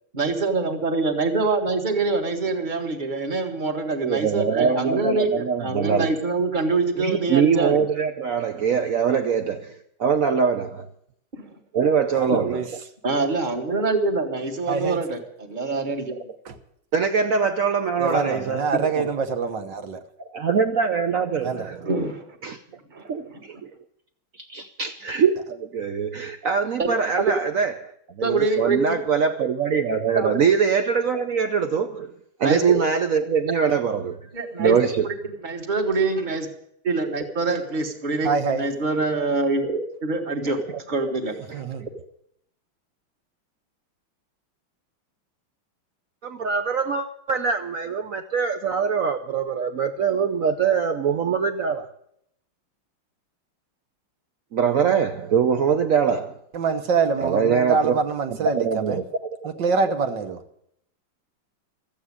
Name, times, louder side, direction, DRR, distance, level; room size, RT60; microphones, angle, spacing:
voice 1, 0.1-7.8 11.3-11.5 12.3-12.4 13.0-16.2 18.9-19.0 21.8-22.2 22.9-23.1 26.8-26.9 28.2-29.0 30.1-30.3 32.4-32.8 34.3-34.8 35.0-35.1 35.4-36.5 36.8-38.3 38.6-40.6 40.9-41.4, right 3 dB, 25° right, 1.6 m, -25 dB
voice 2, 4.0-6.1 7.0-10.9 11.7-12.6 16.9-18.6 20.2-21.9 22.4-22.6 23.0-23.7 24.4-32.1 32.4-34.2 34.6-35.1 40.4-40.8 41.5-41.6 46.2-51.9 54.5-56.4 57.2-58.0 58.4-59.5, right 6 dB, 80° right, 0.7 m, -23 dB
voice 3, 12.2-12.7 14.7-15.0 16.5-16.6 18.0-20.0 21.4-21.7 38.2-38.6 41.5-41.8 56.5-59.0 59.6-60.4, right 5 dB, 60° right, 1.7 m, -25 dB
14.0 x 8.6 x 9.7 m
omnidirectional pair, 2.4 m